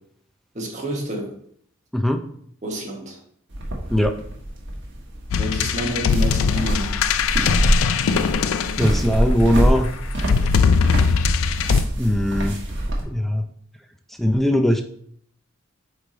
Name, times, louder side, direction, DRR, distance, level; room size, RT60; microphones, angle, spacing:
voice 1, 0.5-1.4 2.6-3.2 5.3-7.0, right 1 dB, 35° right, 1 dB, 1.2 m, -29 dB
sound 1, 3.5-13.0, right 1 dB, 60° right, 1.3 m, -25 dB
sound 2, 5.3-9.4 10.2-11.8, left 6 dB, 80° left, 0.4 m, -21 dB
voice 2, 8.8-9.9 12.0-12.5 13.1-13.4 14.2-14.8, equal, ahead, 6 dB, 0.4 m, -20 dB
8.2 x 3.2 x 3.8 m, 0.66 s
head